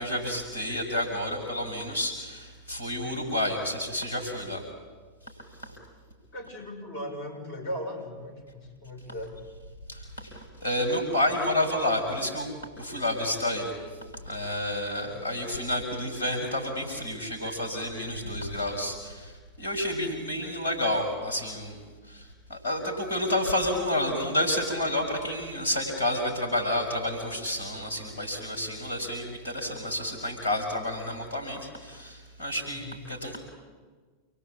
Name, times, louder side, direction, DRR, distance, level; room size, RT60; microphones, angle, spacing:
voice 1, 0.0-4.6 5.6-5.8 9.9-13.8 14.2-21.8 22.1-33.4, left 1 dB, 70° left, 2 dB, 6.6 m, -30 dB
voice 2, 6.3-9.4 15.0-15.2 32.7-33.0, left 1 dB, 50° left, 3 dB, 6.8 m, -38 dB
28.0 x 23.5 x 8.6 m, 1.5 s
figure-of-eight pair, 90°, 0 cm